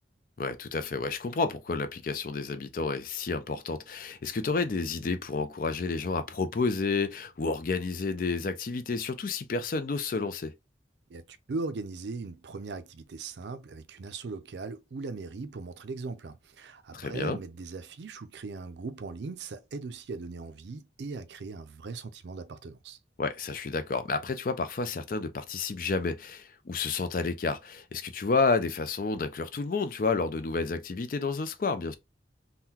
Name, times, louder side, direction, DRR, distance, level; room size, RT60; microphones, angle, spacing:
voice 1, 0.4-10.5 16.9-17.4 23.2-32.0, left 4 dB, 50° left, 0.4 m, -30 dB
voice 2, 11.1-23.0, right 3 dB, 75° right, 0.4 m, -39 dB
3.7 x 2.2 x 2.8 m
head